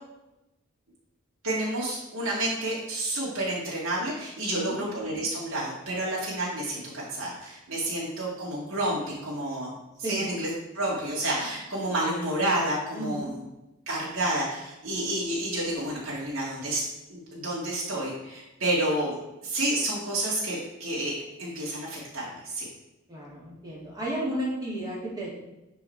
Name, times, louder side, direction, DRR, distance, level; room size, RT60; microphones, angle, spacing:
voice 1, 1.4-13.4 13.9-22.7, right 1 dB, 90° right, -6 dB, 2.5 m, -30 dB
voice 2, 4.4-4.8 10.0-10.3 12.9-13.3 23.1-25.3, right 1 dB, 20° right, -6 dB, 3.1 m, -33 dB
11.0 x 4.8 x 4.6 m, 0.94 s
head